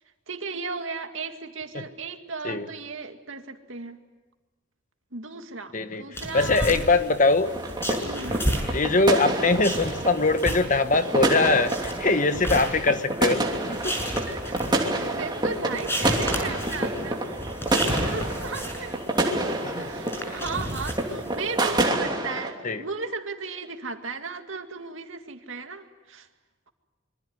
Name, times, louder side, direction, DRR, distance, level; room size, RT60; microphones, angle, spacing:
voice 1, 0.3-4.0 5.1-6.9 8.0-8.5 14.3-14.6 14.9-26.3, right 4 dB, 75° right, 6 dB, 2.2 m, -36 dB
voice 2, 5.7-6.0 6.3-7.5 7.9-8.0 8.7-14.0 19.6-19.9 22.6-22.8, left 3 dB, 40° left, 9 dB, 1.3 m, -22 dB
sound 1, 6.1-21.8, equal, 10° left, 6.5 m, -33 dB
sound 2, 7.4-22.5, right 1 dB, 20° right, 3.0 m, -28 dB
26.0 x 24.0 x 9.5 m, 1.2 s
head